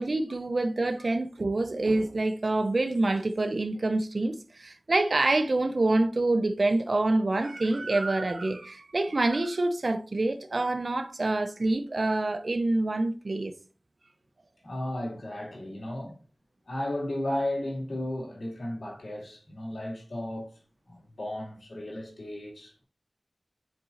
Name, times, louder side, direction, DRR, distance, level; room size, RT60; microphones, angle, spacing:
voice 1, 0.0-13.5, right 2 dB, 60° right, 0.5 m, -26 dB
voice 2, 14.6-16.2 16.7-20.5 20.9-22.8, left 1 dB, 90° left, 2.3 m, -34 dB
9.5 x 4.0 x 2.5 m
wide cardioid pair, 70°, 0 cm